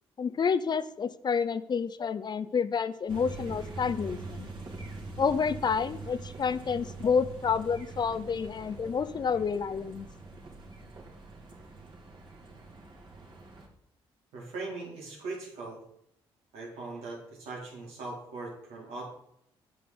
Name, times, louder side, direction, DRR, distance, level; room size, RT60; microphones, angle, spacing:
voice 1, 0.2-4.5 5.2-10.1, left 6 dB, 45° left, 15 dB, 0.5 m, -29 dB
sound 1, 3.1-13.7, right 3 dB, 50° right, 2.3 m, -44 dB
voice 2, 14.3-15.8 16.5-19.1, right 3 dB, 90° right, -3 dB, 3.1 m, -40 dB
8.5 x 6.4 x 3.9 m, 0.74 s
cardioid pair, 70°, 11 cm